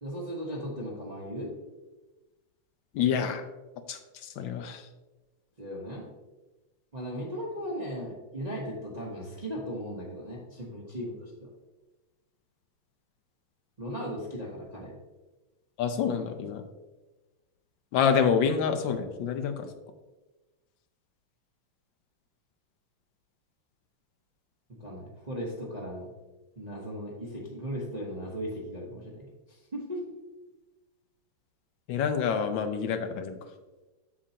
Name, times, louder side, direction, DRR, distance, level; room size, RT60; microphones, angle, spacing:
voice 1, 0.0-1.5 5.6-6.1 6.9-11.5 13.8-15.0 24.8-26.1 26.6-30.0, equal, 35° right, -4 dB, 0.7 m, -37 dB
voice 2, 2.9-3.4 3.9-4.9 15.8-16.6 17.9-19.7 31.9-33.4, left 7 dB, 70° left, 8 dB, 1.2 m, -27 dB
7.4 x 6.9 x 2.8 m, 1.1 s
omnidirectional pair, 2.3 m